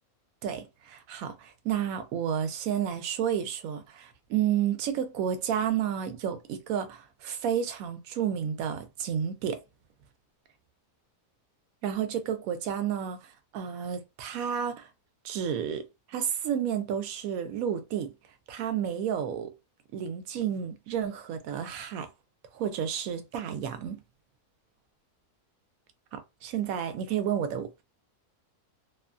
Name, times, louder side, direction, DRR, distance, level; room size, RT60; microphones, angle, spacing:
voice 1, 0.4-9.6 11.8-14.9 15.2-18.1 18.5-19.5 19.9-22.1 22.5-24.0 26.1-27.7, right 9 dB, 70° right, 1.0 m, -31 dB
2.7 x 2.2 x 2.4 m
omnidirectional pair, 1.6 m